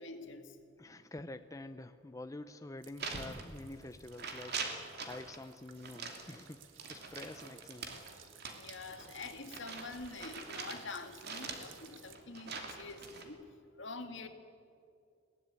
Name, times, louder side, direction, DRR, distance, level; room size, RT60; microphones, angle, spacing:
voice 1, 0.0-0.7 8.2-13.4 13.8-14.3, left 3 dB, 65° left, 6 dB, 2.1 m, -46 dB
voice 2, 0.8-4.6 5.0-6.6 6.9-8.0, left 2 dB, 15° left, 9 dB, 0.6 m, -47 dB
sound 1, 2.8-12.1, right 8 dB, 70° right, 1.7 m, -58 dB
sound 2, 3.0-3.9 4.1-5.4 5.8-10.8 11.2-13.2, right 4 dB, 55° right, 2.8 m, -43 dB
21.5 x 18.0 x 9.6 m, 2.4 s
head